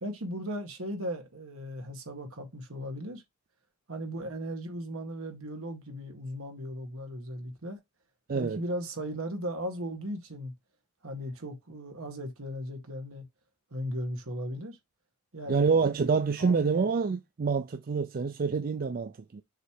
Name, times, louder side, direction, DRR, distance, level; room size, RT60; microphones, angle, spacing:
voice 1, 0.0-3.2 3.9-7.8 8.3-10.5 11.0-13.2 13.7-14.8 15.3-16.9, equal, 65° right, 1.8 m, -37 dB
voice 2, 8.3-8.6 15.5-19.4, right 5 dB, 40° right, 0.4 m, -27 dB
6.6 x 3.2 x 4.8 m
head